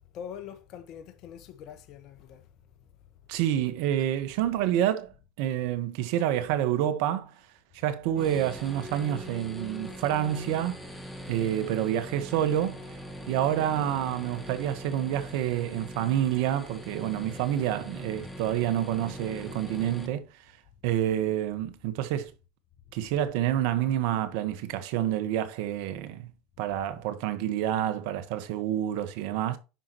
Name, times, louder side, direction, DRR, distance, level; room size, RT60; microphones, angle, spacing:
voice 1, 0.1-2.5, left 8 dB, 55° left, 1.5 m, -43 dB
voice 2, 3.3-7.5 7.7-10.8 11.3-12.9 13.2-20.5 20.8-22.3 22.9-26.3 26.6-29.6, right 11 dB, 70° right, 1.5 m, -28 dB
sound 1, 8.1-20.1, equal, 5° left, 3.1 m, -42 dB
10.0 x 5.8 x 3.1 m
supercardioid pair, 100°, 0 cm